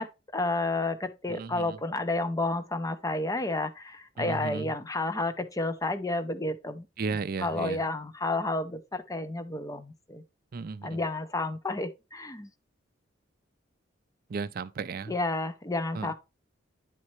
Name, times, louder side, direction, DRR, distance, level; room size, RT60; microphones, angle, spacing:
voice 1, 0.0-6.9 7.4-10.2 10.8-12.5 15.1-16.1, left 2 dB, 20° left, 0.6 m, -31 dB
voice 2, 1.3-1.8 4.2-4.7 7.0-7.8 10.5-11.0 14.3-15.1 15.9-16.1, right 4 dB, 50° right, 0.4 m, -34 dB
9.9 x 4.2 x 3.1 m
head